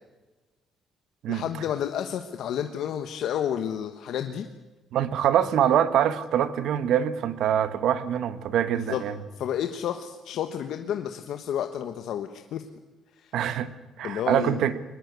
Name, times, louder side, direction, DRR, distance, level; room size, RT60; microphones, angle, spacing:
voice 1, 1.3-4.5 8.8-9.0 9.4-12.6 13.1-13.3 14.0-14.6, left 9 dB, 65° left, 7 dB, 1.2 m, -31 dB
voice 2, 4.9-9.1 13.3-13.7 14.0-14.8, right 10 dB, 70° right, 12 dB, 1.4 m, -24 dB
23.0 x 20.0 x 8.3 m, 1.2 s
cardioid pair, 170°, 0 cm